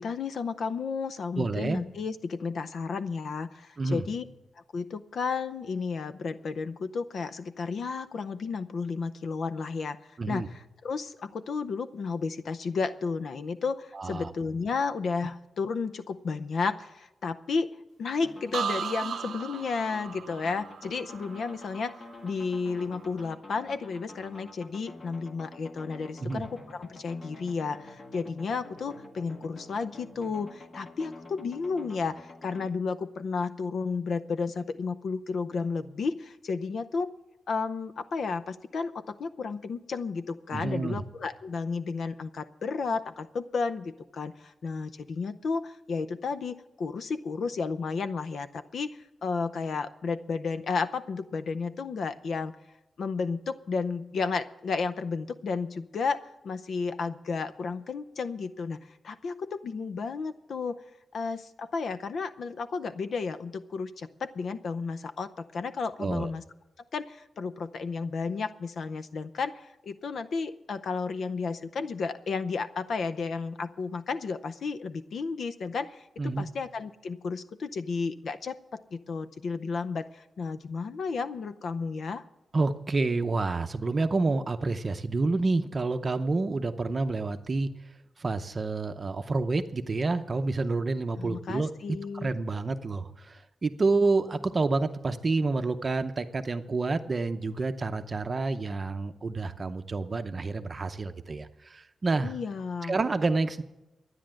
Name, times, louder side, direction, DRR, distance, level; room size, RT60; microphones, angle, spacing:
voice 1, 0.0-4.2 4.7-17.7 18.0-22.0 22.2-37.1 37.5-52.6 53.0-60.8 61.1-66.4 66.9-82.2 91.2-92.3 102.2-103.0, left 4 dB, 60° left, 10 dB, 0.6 m, -32 dB
voice 2, 1.4-1.8 3.8-4.0 10.2-10.5 13.9-14.3 26.2-26.4 40.5-41.0 66.0-66.3 76.2-76.5 82.5-87.7 88.2-91.7 92.2-102.3 102.8-103.6, right 3 dB, 30° right, 8 dB, 0.7 m, -28 dB
sound 1, 18.2-32.7, left 2 dB, 40° left, 1.7 m, -48 dB
sound 2, 18.5-22.3 22.7-23.2, right 7 dB, 70° right, 0.5 m, -37 dB
12.5 x 9.7 x 7.6 m, 0.95 s
wide cardioid pair, 150°, 0 cm